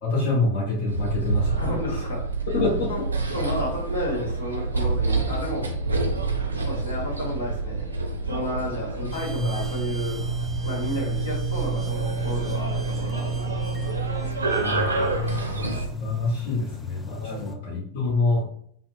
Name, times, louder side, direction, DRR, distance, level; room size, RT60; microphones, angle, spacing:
voice 1, 0.0-2.0 2.5-2.9 9.0-9.1 9.4-9.5 14.6-18.4, left 3 dB, 50° left, -5 dB, 0.8 m, -26 dB
sound 1, 0.9-15.9, right 3 dB, 75° right, 0.4 m, -28 dB
voice 2, 1.6-2.2 2.9-3.0 3.3-5.7 6.6-7.9 8.3-10.2 10.6-14.0 17.2-17.5, left 1 dB, 70° left, -2 dB, 1.1 m, -32 dB
sound 2, 9.1-17.5, right 3 dB, 5° left, 0.4 m, -33 dB
2.5 x 2.0 x 3.1 m, 0.64 s
figure-of-eight pair, 90°, 0 cm